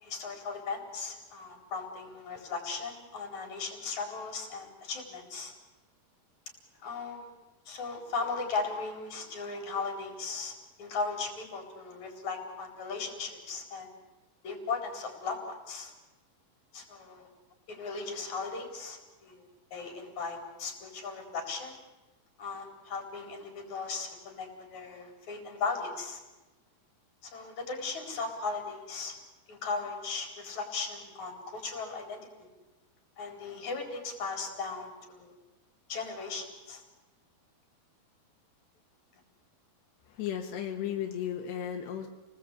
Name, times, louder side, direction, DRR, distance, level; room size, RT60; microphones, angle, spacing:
voice 1, 0.0-5.5 6.8-7.3 7.7-10.5 10.8-13.9 14.4-15.9 16.7-17.3 17.7-19.4 19.7-21.8 22.4-26.2 27.2-29.2 29.5-32.2 33.2-35.3 35.9-36.8, left 4 dB, 45° left, 3 dB, 5.5 m, -37 dB
voice 2, 40.1-42.1, left 9 dB, 85° left, 3 dB, 3.7 m, -35 dB
30.0 x 19.5 x 8.4 m, 1.1 s
omnidirectional pair, 4.7 m